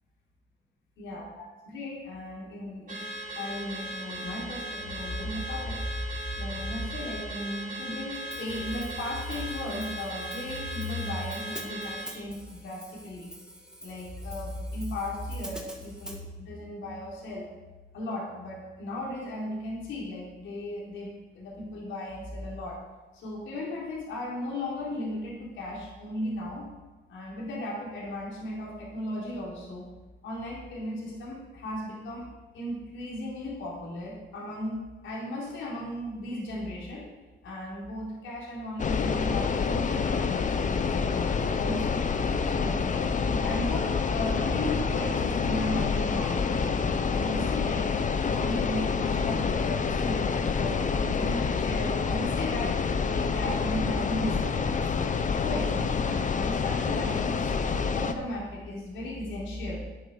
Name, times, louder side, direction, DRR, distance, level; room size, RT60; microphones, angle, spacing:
voice 1, 1.0-3.0 3.3-5.8 6.3-13.3 13.8-17.5 17.9-22.8 23.1-26.7 27.1-29.9 30.2-32.3 32.5-37.1 37.4-42.0 42.4-47.9 48.2-52.8 53.0-57.5 57.8-59.8, left 1 dB, 75° left, -4 dB, 3.7 m, -36 dB
Car / Alarm, 2.9-12.1, right 1 dB, 40° right, 2.9 m, -38 dB
Hi-hat, 8.3-16.2, right 1 dB, 5° right, 2.1 m, -47 dB
sound 1, 38.8-58.1, left 5 dB, 40° left, 0.9 m, -27 dB
9.6 x 9.1 x 6.6 m, 1.2 s
cardioid pair, 90°, 20 cm